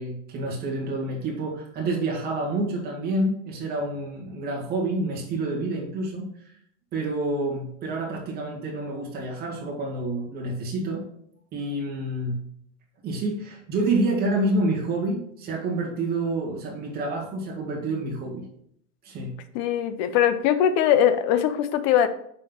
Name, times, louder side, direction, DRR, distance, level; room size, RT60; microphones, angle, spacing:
voice 1, 0.0-6.3 6.9-11.1 11.5-12.4 13.0-18.5 19.0-19.4, right 2 dB, 25° right, -2 dB, 2.1 m, -28 dB
voice 2, 19.5-22.1, left 9 dB, 35° left, 11 dB, 0.5 m, -21 dB
5.6 x 4.1 x 5.4 m, 0.69 s
supercardioid pair, 145°, 38 cm